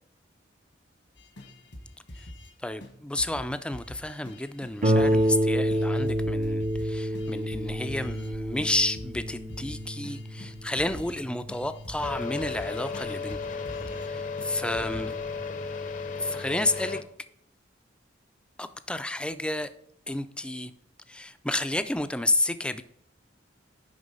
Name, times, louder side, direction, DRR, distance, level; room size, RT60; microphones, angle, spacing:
sound 1, 1.2-2.5 2.8-2.9 3.2-5.4 5.7-8.3 8.6-8.7 9.0-11.2 11.5-14.1 14.4-14.5 14.7-15.3, left 1 dB, 85° left, 1.8 m, -45 dB
voice 1, 2.6-13.4 14.0-15.1 16.2-17.0 18.6-19.7 20.1-20.7 21.1-22.8, left 1 dB, 5° left, 11 dB, 0.4 m, -31 dB
Harp, 4.8-14.0 14.8-14.9 15.4-15.5, equal, 45° right, 0.8 m, -29 dB
sound 2, 12.0-17.0, left 4 dB, 45° left, 0.7 m, -34 dB
10.5 x 3.9 x 5.3 m, 0.73 s
head